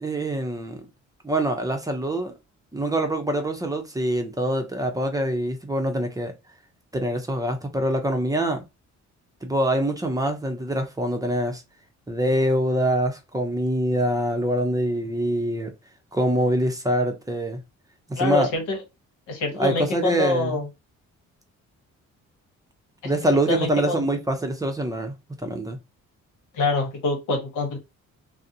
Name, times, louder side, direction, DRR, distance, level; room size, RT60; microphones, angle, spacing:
voice 1, 0.0-0.8 1.2-2.3 2.7-6.3 6.9-8.6 9.4-11.6 12.1-15.7 16.1-17.6 18.1-18.5 19.5-20.6 23.0-25.1 25.4-25.8, right 1 dB, 10° right, 0.5 m, -24 dB
voice 2, 18.2-18.8 19.3-20.7 23.0-23.1 23.5-24.1 26.5-27.8, left 2 dB, 90° left, 1.0 m, -25 dB
2.4 x 2.0 x 2.7 m
cardioid pair, 90°, 30 cm